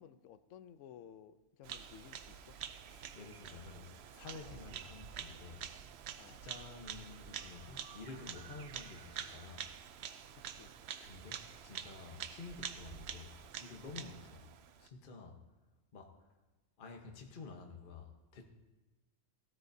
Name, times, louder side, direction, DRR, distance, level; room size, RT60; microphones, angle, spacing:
voice 1, 0.0-2.6 4.5-4.7 6.2-6.4 10.3-10.7 14.0-14.1, left 9 dB, 80° left, 13 dB, 0.9 m, -56 dB
Bird vocalization bird call bird song, 1.6-14.9, right 9 dB, 65° right, 0.8 m, -47 dB
voice 2, 2.9-5.6 6.3-9.7 11.0-14.5 14.8-15.4 15.9-16.1 16.8-18.4, left 4 dB, 45° left, 2 dB, 1.1 m, -51 dB
16.5 x 12.5 x 2.7 m, 1.1 s
omnidirectional pair, 1.3 m